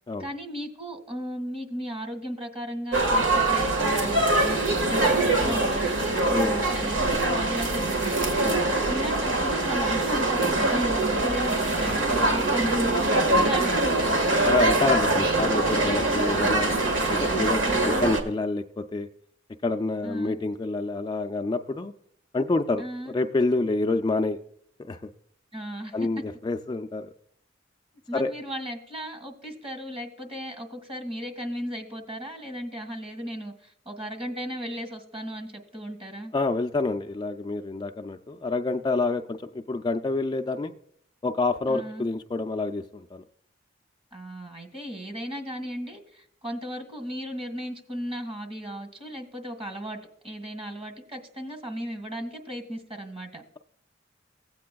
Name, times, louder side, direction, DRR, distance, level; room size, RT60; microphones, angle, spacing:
voice 1, 0.2-14.3 17.6-18.0 20.0-20.4 22.8-23.1 25.5-26.1 28.1-36.3 41.7-42.1 44.1-50.0 50.2-53.4, equal, 30° right, 5 dB, 1.9 m, -35 dB
sound 1, 2.9-18.2, right 2 dB, 90° right, 1.6 m, -23 dB
voice 2, 6.3-6.7 8.4-8.6 13.3-13.5 14.4-16.7 17.1-19.1 19.6-21.9 22.3-24.4 24.8-25.1 25.9-27.1 28.1-28.3 36.3-40.7 41.2-43.2, left 3 dB, 25° left, 6 dB, 0.3 m, -28 dB
16.5 x 8.4 x 2.3 m, 0.67 s
head